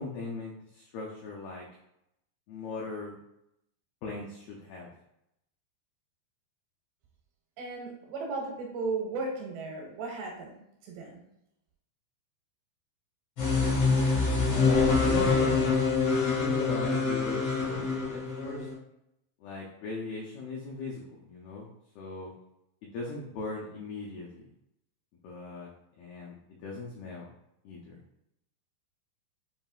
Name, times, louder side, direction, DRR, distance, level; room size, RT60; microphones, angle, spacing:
voice 1, 0.0-1.6 2.5-3.2 4.0-4.9 14.5-18.7 19.4-21.7 22.0-22.3 22.8-24.5 25.2-25.7 26.0-27.3 27.7-28.0, left 3 dB, 90° left, -3 dB, 2.1 m, -38 dB
voice 2, 7.6-11.2, right 3 dB, 85° right, 0 dB, 2.7 m, -36 dB
sound 1, 13.4-18.7, left 4 dB, 70° left, 1.3 m, -25 dB
7.2 x 2.9 x 2.3 m, 0.80 s
omnidirectional pair, 5.2 m